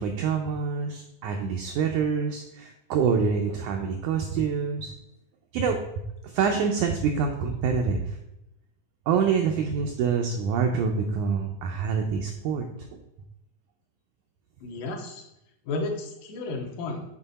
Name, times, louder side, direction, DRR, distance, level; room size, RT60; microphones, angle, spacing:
voice 1, 0.0-4.9 5.5-5.8 6.2-8.1 9.1-12.6 12.9-13.0, right 6 dB, 85° right, 3 dB, 1.7 m, -26 dB
voice 2, 14.6-15.2 15.7-17.0, left 3 dB, 75° left, 2 dB, 2.5 m, -32 dB
7.7 x 4.5 x 4.1 m, 0.86 s
omnidirectional pair, 4.1 m